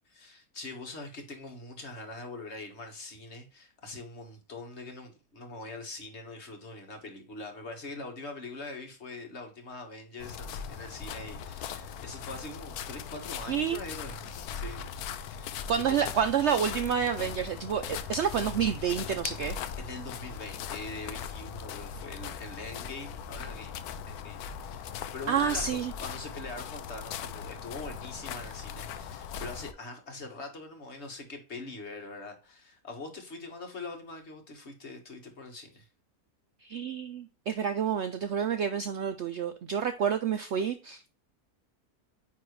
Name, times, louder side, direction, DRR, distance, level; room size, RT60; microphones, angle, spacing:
voice 1, 0.0-16.2 18.0-18.1 19.8-23.8 24.1-35.9, left 2 dB, 45° left, 1.6 m, -43 dB
sound 1, 10.2-29.7, left 7 dB, 75° left, 1.1 m, -39 dB
voice 2, 13.5-13.8 15.7-19.6 25.3-25.9 36.6-41.1, right 7 dB, 65° right, 0.7 m, -29 dB
9.3 x 3.5 x 3.1 m
omnidirectional pair, 1.6 m